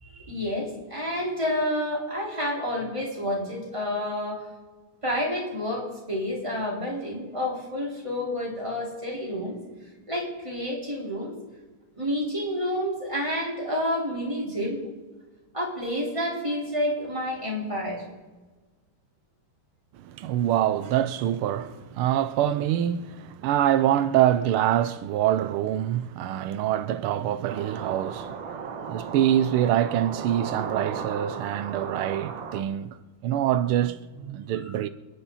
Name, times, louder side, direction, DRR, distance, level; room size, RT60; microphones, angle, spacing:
voice 1, 0.0-4.5 5.0-9.6 10.1-11.3 12.0-14.8 15.5-18.0 34.5-34.8, left 1 dB, 15° right, 4.6 m, -29 dB
voice 2, 20.0-28.6 28.8-33.0 33.2-34.9, right 11 dB, 90° right, 1.6 m, -25 dB
sound 1, 27.5-32.6, right 6 dB, 70° right, 1.9 m, -36 dB
27.5 x 10.0 x 4.1 m
omnidirectional pair, 2.3 m